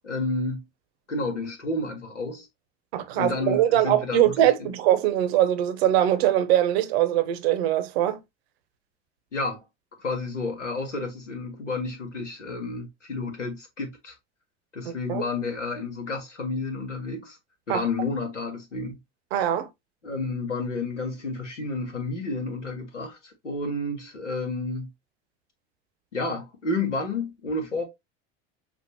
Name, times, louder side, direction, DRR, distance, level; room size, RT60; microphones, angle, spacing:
voice 1, 0.0-0.6 1.1-2.5 3.1-4.7 9.3-9.6 10.0-14.1 14.7-17.4 17.7-19.0 20.0-24.9 26.1-27.9, left 3 dB, 90° left, 1.1 m, -31 dB
voice 2, 2.9-8.2 14.9-15.2 17.7-17.8 19.3-19.7, right 12 dB, 60° right, 0.8 m, -22 dB
6.2 x 2.4 x 2.7 m
figure-of-eight pair, 75°, 35 cm